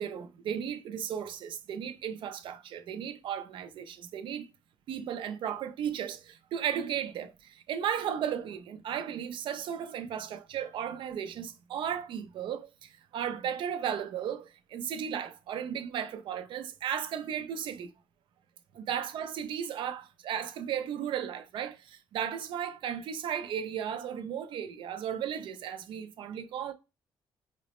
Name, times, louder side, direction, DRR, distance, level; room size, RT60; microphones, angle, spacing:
voice 1, 0.0-4.5 4.9-17.9 18.8-26.7, right 9 dB, 60° right, 0.4 m, -35 dB
3.8 x 2.0 x 2.9 m
cardioid pair, 145°, 9 cm